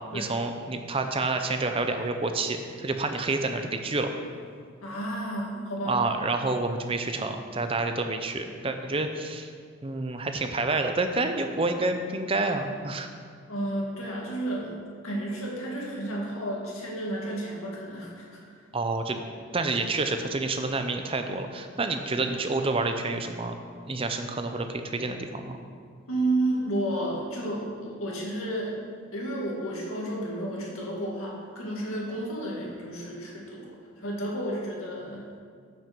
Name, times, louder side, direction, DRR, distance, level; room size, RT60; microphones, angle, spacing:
voice 1, 0.1-4.1 5.9-9.5 9.8-13.1 18.7-19.2 19.5-23.5 23.9-25.6, right 3 dB, 25° right, 6 dB, 0.6 m, -28 dB
voice 2, 4.8-6.0 13.5-14.8 15.0-18.4 26.1-28.8 29.1-35.3, right 1 dB, 85° left, -2 dB, 2.0 m, -32 dB
8.8 x 6.0 x 6.0 m, 2.1 s
head